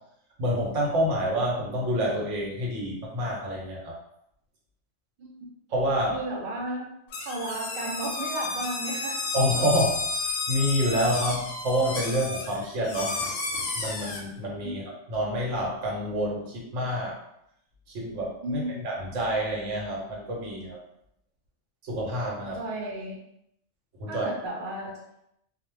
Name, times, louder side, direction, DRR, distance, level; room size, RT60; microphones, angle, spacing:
voice 1, 0.4-3.9 5.7-6.4 9.3-13.2 13.7-17.2 17.9-20.8 21.8-22.6 24.0-24.3, equal, 80° right, -2 dB, 1.1 m, -28 dB
voice 2, 6.1-6.9 7.3-9.2 14.6-14.7 18.4-18.8 22.5-23.2 24.1-25.0, right 2 dB, 60° right, -1 dB, 0.6 m, -33 dB
sound 1, 7.1-14.2, left 3 dB, 65° left, 0.7 m, -32 dB
2.3 x 2.0 x 3.1 m, 0.76 s
omnidirectional pair, 1.3 m